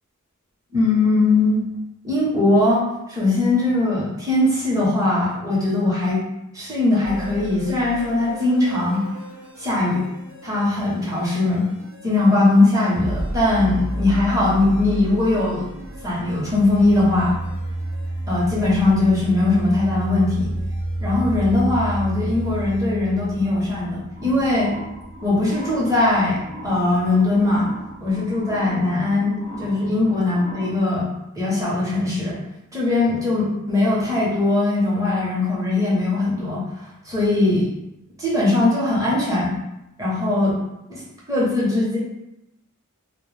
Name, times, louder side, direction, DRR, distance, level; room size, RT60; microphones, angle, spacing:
voice 1, 0.7-1.6 2.0-6.2 6.5-9.0 9.6-10.1 10.4-11.6 12.0-15.7 16.0-17.4 18.3-20.5 21.0-24.7 25.2-27.7 28.0-31.1 31.4-32.4 32.7-37.7 38.2-39.5 40.0-40.6 40.9-41.0 41.3-42.0, left 2 dB, 15° right, -7 dB, 0.8 m, -20 dB
sound 1, 7.0-22.8, equal, 65° right, 0.7 m, -36 dB
sound 2, 15.9-28.6, right 1 dB, 90° right, 0.4 m, -31 dB
sound 3, 24.2-30.8, equal, 40° right, 0.9 m, -39 dB
2.2 x 2.1 x 3.1 m, 0.89 s
head